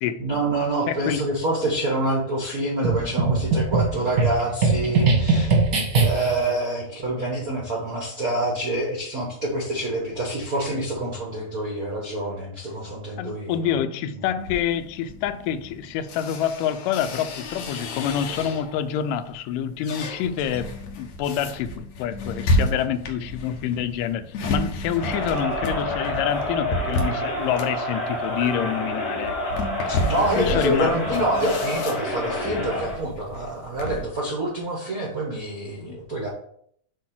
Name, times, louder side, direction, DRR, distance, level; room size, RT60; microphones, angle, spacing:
voice 1, 0.2-5.5 6.0-13.7 14.2-14.3 29.8-36.3, right 1 dB, 75° right, 0.8 m, -27 dB
voice 2, 0.9-1.3 13.2-29.4 30.4-31.3 35.8-36.0, left 9 dB, 85° left, 2.1 m, -27 dB
sound 1, 2.8-6.5, right 3 dB, 45° right, 1.1 m, -21 dB
sound 2, 14.4-18.9 19.3-34.1, left 1 dB, 65° left, 2.0 m, -31 dB
Crowd, 24.9-33.0, left 1 dB, 45° left, 2.5 m, -28 dB
7.8 x 3.0 x 5.9 m
omnidirectional pair, 3.8 m